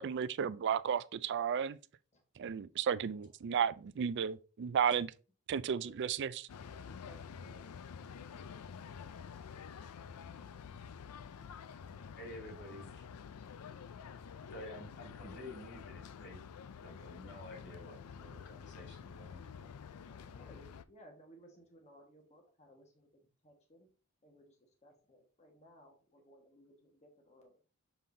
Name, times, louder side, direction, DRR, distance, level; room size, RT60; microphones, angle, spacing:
voice 1, 0.0-1.8 2.4-5.1 5.5-6.5, right 7 dB, 50° right, 0.4 m, -33 dB
sound 1, 6.5-20.8, left 6 dB, 80° left, 0.4 m, -49 dB
voice 2, 6.9-7.8 20.1-23.1 23.4-23.9 24.2-24.6 24.8-27.5, equal, 30° left, 1.5 m, -60 dB
voice 3, 12.1-13.1 14.5-16.4 16.8-19.7, left 1 dB, 55° left, 2.6 m, -50 dB
6.8 x 5.6 x 2.7 m
head